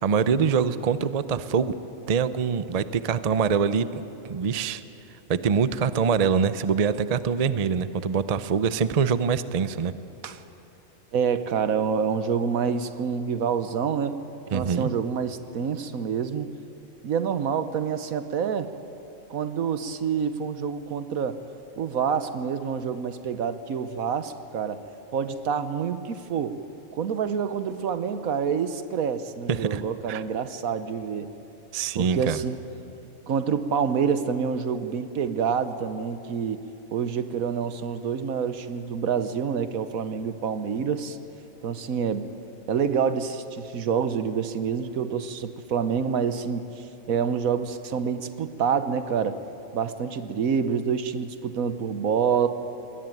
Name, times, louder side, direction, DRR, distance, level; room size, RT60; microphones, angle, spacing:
voice 1, 0.0-1.7 2.1-4.8 5.3-10.0 14.5-14.9 29.5-29.8 30.1-30.2 31.7-32.4, right 6 dB, 45° right, 13 dB, 0.5 m, -24 dB
voice 2, 11.1-14.2 14.5-16.5 17.0-18.7 19.3-21.4 21.8-24.8 25.1-26.6 26.9-31.3 31.9-32.6 33.3-36.6 36.9-41.2 41.6-42.3 42.7-49.4 49.7-52.5, right 6 dB, 80° right, 11 dB, 1.4 m, -27 dB
21.5 x 18.5 x 9.2 m, 2.9 s
omnidirectional pair, 1.5 m